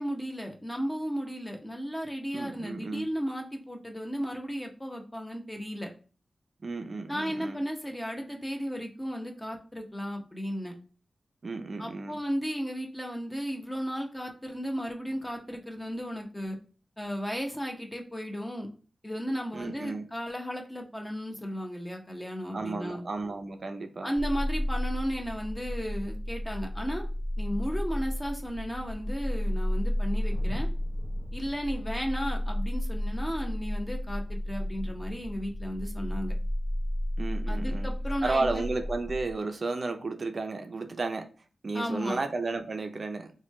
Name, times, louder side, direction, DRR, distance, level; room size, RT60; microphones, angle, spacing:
voice 1, 0.0-5.9 7.1-10.7 11.8-16.6 17.0-18.7 19.0-23.0 24.0-27.0 27.4-30.7 31.3-36.3 37.5-38.6 41.7-42.2, equal, 15° left, 2 dB, 0.8 m, -34 dB
voice 2, 2.3-3.1 6.6-7.6 11.4-12.2 19.5-20.1 22.5-24.1 37.2-37.9 38.2-41.3 41.6-43.3, right 3 dB, 55° right, 6 dB, 0.4 m, -33 dB
sound 1, 24.2-39.3, equal, ahead, 1.3 m, -32 dB
Thunder, 27.0-27.1 27.3-34.7 36.3-36.4, equal, 70° left, 1.1 m, -52 dB
3.1 x 2.2 x 4.1 m, 0.38 s
wide cardioid pair, 65°, 0 cm